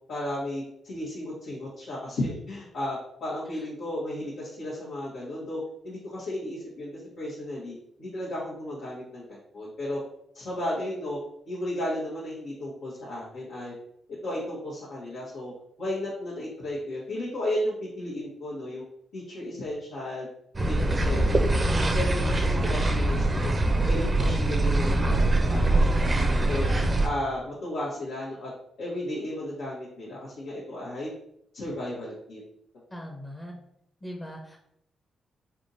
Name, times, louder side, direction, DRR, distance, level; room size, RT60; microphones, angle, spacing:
voice 1, 0.1-10.0 10.3-11.2 11.5-13.7 14.2-15.5 15.8-18.8 19.1-20.3 20.7-21.2 21.9-23.6 23.9-26.7 27.0-28.5 28.8-31.1 31.5-32.4, left 1 dB, 80° left, -8 dB, 1.3 m, -34 dB
sound 1, 20.5-27.1, right 2 dB, 30° right, 0.6 m, -23 dB
voice 2, 32.9-33.5 34.0-34.6, equal, 20° left, -1 dB, 0.8 m, -39 dB
4.1 x 3.5 x 2.7 m, 0.75 s
cardioid pair, 65°, 0 cm